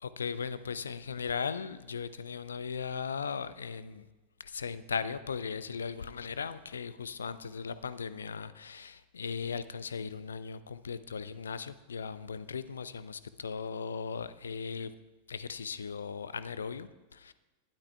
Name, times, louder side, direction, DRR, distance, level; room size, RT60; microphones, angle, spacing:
voice 1, 0.0-4.1 4.4-14.9 15.3-17.3, left 6 dB, 70° left, 14 dB, 0.5 m, -38 dB
20.5 x 12.0 x 2.3 m, 1.2 s
figure-of-eight pair, 90°, 0 cm